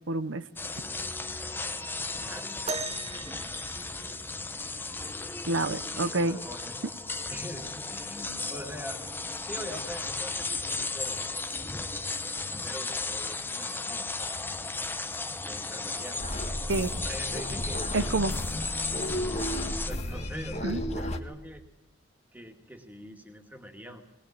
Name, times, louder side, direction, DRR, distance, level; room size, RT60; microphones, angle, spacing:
voice 1, 0.1-0.4 5.5-6.4 16.7-17.0 17.9-18.3 20.6-20.8, right 2 dB, 80° right, 12 dB, 0.8 m, -28 dB
sound 1, 0.6-19.9, left 3 dB, 10° left, 0.8 m, -35 dB
voice 2, 2.1-3.3 5.9-6.8 7.3-9.0 9.4-11.2 12.6-14.7 15.4-16.3 17.0-18.2 19.9-21.6 22.3-24.0, equal, 10° right, 4 dB, 2.3 m, -43 dB
sound 2, 2.7-4.6 6.2-6.3 7.1-7.3 8.3-8.4, right 4 dB, 35° right, 1.0 m, -38 dB
sound 3, 16.2-21.2, equal, 35° left, 1.6 m, -33 dB
21.0 x 20.5 x 8.9 m, 0.86 s
head